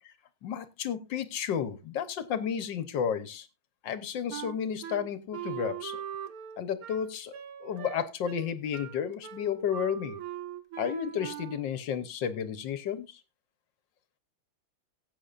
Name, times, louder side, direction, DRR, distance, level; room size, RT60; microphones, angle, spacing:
voice 1, 0.4-3.5 3.8-6.0 6.6-10.2 10.8-13.2, left 8 dB, 65° left, 12 dB, 1.5 m, -32 dB
Wind instrument woodwind instrument, 4.3-11.8, right 10 dB, 55° right, 1.1 m, -41 dB
18.5 x 8.5 x 2.5 m, 0.24 s
omnidirectional pair, 2.3 m